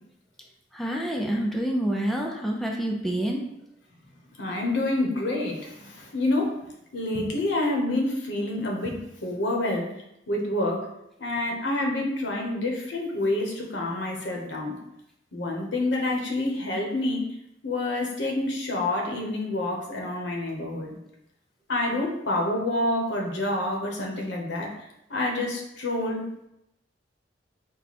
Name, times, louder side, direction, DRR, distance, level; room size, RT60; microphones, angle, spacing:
voice 1, 0.7-3.4, right 1 dB, ahead, -1 dB, 0.4 m, -27 dB
voice 2, 4.4-6.5 6.9-9.9 10.3-10.8 11.2-14.8 15.3-17.2 17.6-21.0 21.7-24.7 25.1-26.2, left 2 dB, 75° left, 0 dB, 0.9 m, -27 dB
4.7 x 2.1 x 4.2 m, 0.83 s
head